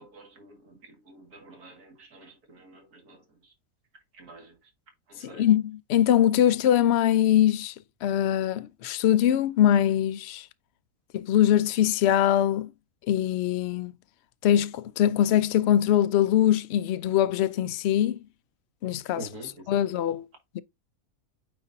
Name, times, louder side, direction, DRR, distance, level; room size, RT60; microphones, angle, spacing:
voice 1, 0.0-3.5 4.1-4.7 5.1-5.5 19.1-19.8, right 2 dB, 90° right, 2.4 m, -47 dB
voice 2, 5.4-7.7 8.0-10.5 11.1-12.7 13.1-13.9 14.4-18.2 18.8-19.2 19.7-20.2, left 11 dB, 70° left, 0.6 m, -22 dB
8.9 x 4.1 x 2.6 m
omnidirectional pair, 1.6 m